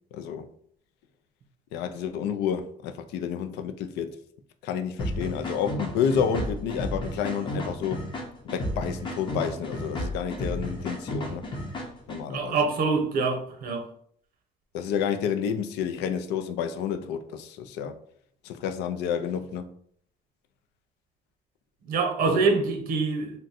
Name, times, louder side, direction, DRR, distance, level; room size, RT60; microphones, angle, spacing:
voice 1, 0.1-0.5 1.7-4.1 4.6-8.0 8.4-11.4 12.1-12.6 14.7-18.0 18.4-19.7 22.2-22.4, left 7 dB, 85° left, 0.4 m, -30 dB
sound 1, 5.0-12.2, equal, 30° left, 0.7 m, -33 dB
voice 2, 12.3-13.8 21.9-23.3, right 4 dB, 60° right, 0.8 m, -25 dB
2.6 x 2.1 x 4.0 m
cardioid pair, 110°, 17 cm